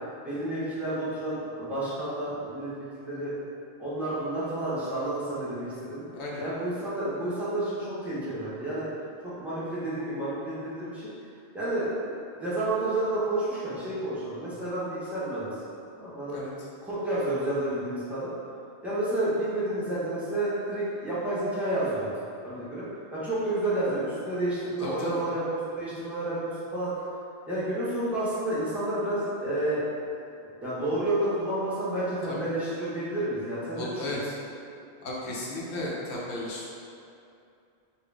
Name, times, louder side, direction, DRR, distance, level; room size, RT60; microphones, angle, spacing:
voice 1, 0.2-2.7 3.0-3.3 3.8-6.1 6.4-8.8 9.2-11.0 11.5-12.1 12.4-15.5 15.9-16.4 16.8-18.3 18.8-22.1 22.4-25.4 25.8-26.9 27.5-29.8 30.6-34.2, right 1 dB, ahead, -12 dB, 0.9 m, -30 dB
voice 2, 24.8-25.2 32.3-32.5 33.7-34.2 35.0-36.7, left 1 dB, 90° left, -4 dB, 1.0 m, -34 dB
3.7 x 2.5 x 3.3 m, 2.6 s
omnidirectional pair, 1.1 m